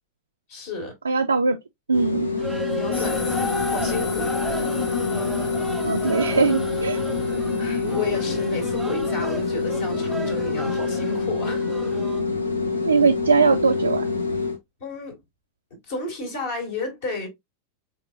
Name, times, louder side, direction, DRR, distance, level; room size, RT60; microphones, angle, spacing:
voice 1, 0.5-0.9 2.6-4.3 7.6-11.6 14.8-15.2 15.9-17.3, left 3 dB, 55° left, 2.3 m, -32 dB
voice 2, 1.0-1.6 1.9-2.3 3.0-3.1 5.9-7.0 12.8-14.1, right 4 dB, 75° right, 0.4 m, -20 dB
sound 1, 1.9-14.6, left 4 dB, 80° left, 0.9 m, -26 dB
sound 2, 2.4-12.2, right 1 dB, 5° right, 0.4 m, -36 dB
sound 3, 2.9-10.5, left 4 dB, 30° left, 1.6 m, -35 dB
4.8 x 3.6 x 2.4 m
figure-of-eight pair, 90°, 0 cm